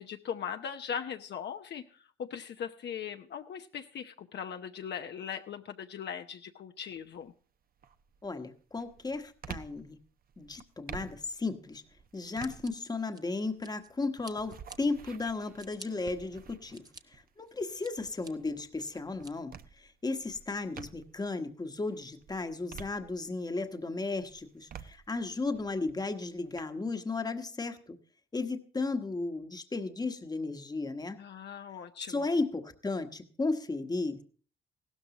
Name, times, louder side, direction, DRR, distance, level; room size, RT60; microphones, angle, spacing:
voice 1, 0.0-7.3 31.2-32.3, left 8 dB, 60° left, 6 dB, 0.8 m, -39 dB
sound 1, 6.9-7.3 7.8-21.3 21.8-23.6 24.0-26.6, right 7 dB, 50° right, 0.8 m, -50 dB
voice 2, 8.2-10.0 10.4-11.8 12.1-28.0 28.3-31.2 32.1-34.2, left 3 dB, 20° left, 8 dB, 1.2 m, -35 dB
Scissors, 12.4-13.9 14.2-14.8 15.3-15.9 16.4-17.0 17.5-18.3 18.8-19.3, right 3 dB, 20° right, 1.0 m, -51 dB
16.0 x 13.0 x 2.9 m, 0.41 s
cardioid pair, 90°, 20 cm